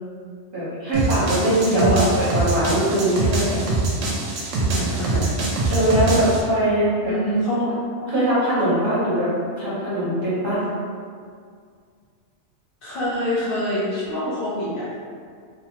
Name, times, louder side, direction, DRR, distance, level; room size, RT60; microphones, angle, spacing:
voice 1, 0.5-3.6 5.7-7.1 8.1-9.3 9.6-10.6, right 1 dB, 50° right, -10 dB, 0.9 m, -21 dB
sound 1, 0.9-6.4, right 3 dB, 75° right, 0.9 m, -24 dB
voice 2, 1.7-2.0 4.6-5.4 7.1-7.7 8.0-8.2 12.8-14.9, equal, 60° left, -8 dB, 0.7 m, -25 dB
2.6 x 2.1 x 2.8 m, 2.1 s
omnidirectional pair, 1.3 m